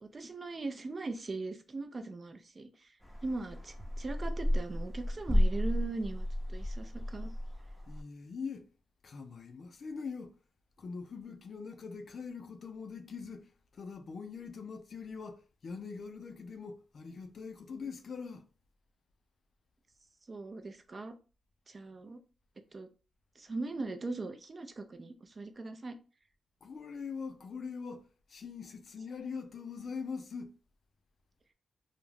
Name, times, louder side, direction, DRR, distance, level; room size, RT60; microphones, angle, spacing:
voice 1, 0.0-2.9 3.2-7.3 20.3-21.2 21.7-22.2 22.7-22.9 23.4-26.0, right 3 dB, 40° right, 0.4 m, -40 dB
sound 1, 3.0-8.0, equal, 5° left, 0.6 m, -32 dB
voice 2, 7.9-8.7 9.0-10.3 10.8-13.5 13.7-18.4 26.6-28.0 28.3-30.5, left 5 dB, 60° left, 0.4 m, -42 dB
2.4 x 2.1 x 3.1 m
cardioid pair, 80°, 0 cm